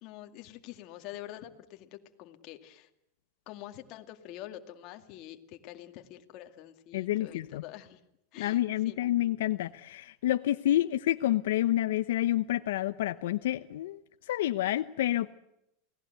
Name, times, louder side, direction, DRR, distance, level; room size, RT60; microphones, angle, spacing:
voice 1, 0.0-2.9 3.5-8.0 8.3-9.1, left 13 dB, 40° left, 5 dB, 2.2 m, -46 dB
voice 2, 6.9-7.6 8.4-14.0 14.3-15.3, left 13 dB, 75° left, 9 dB, 0.9 m, -28 dB
29.0 x 18.0 x 8.0 m, 0.83 s
supercardioid pair, 165°, 0 cm